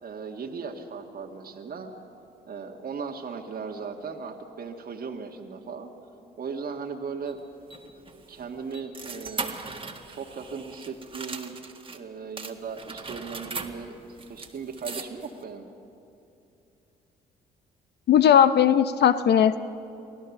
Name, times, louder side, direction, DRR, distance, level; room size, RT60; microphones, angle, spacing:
voice 1, 0.0-1.9 2.5-5.9 6.4-7.4 8.3-9.6 10.1-11.6 11.9-14.0 14.3-15.7, right 5 dB, 50° right, 1 dB, 1.7 m, -37 dB
sound 1, 7.3-12.0 12.4-15.4, right 4 dB, 25° right, 1.8 m, -39 dB
voice 2, 18.1-19.6, left 9 dB, 55° left, 13 dB, 0.7 m, -18 dB
23.5 x 15.5 x 7.2 m, 2.9 s
hypercardioid pair, 60°, 20 cm